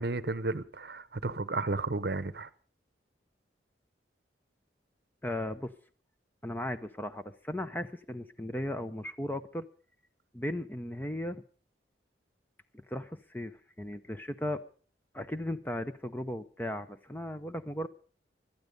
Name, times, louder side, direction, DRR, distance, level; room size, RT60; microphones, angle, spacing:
voice 1, 0.0-2.5, right 3 dB, 60° right, 0.8 m, -33 dB
voice 2, 5.2-5.7 6.4-9.7 10.3-11.4 12.7-14.6 15.1-17.9, left 1 dB, 10° left, 0.6 m, -36 dB
17.5 x 12.0 x 5.2 m
head